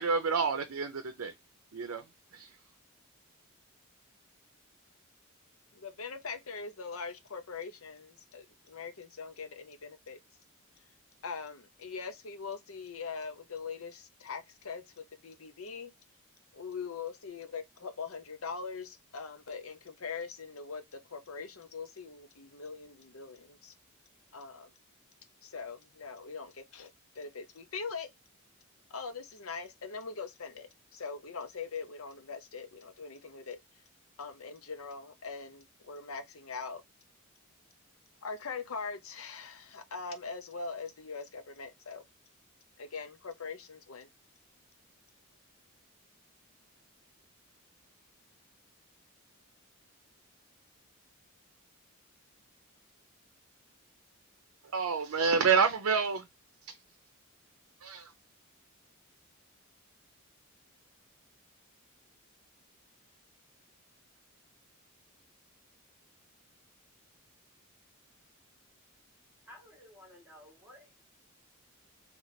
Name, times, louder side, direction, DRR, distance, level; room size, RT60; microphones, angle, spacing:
voice 1, 0.0-1.3 1.7-2.1 2.3-2.5 54.7-56.3 56.7-56.8 57.8-58.1, right 5 dB, 80° right, 0.6 m, -28 dB
voice 2, 5.7-10.2 11.2-15.9 16.5-23.7 24.3-24.7 25.4-26.9 27.1-28.1 28.9-33.6 34.2-36.8 38.2-42.0 42.8-44.1, left 5 dB, 75° left, 0.8 m, -42 dB
voice 3, 69.5-70.9, left 1 dB, 10° right, 1.6 m, -54 dB
3.2 x 3.1 x 4.0 m
head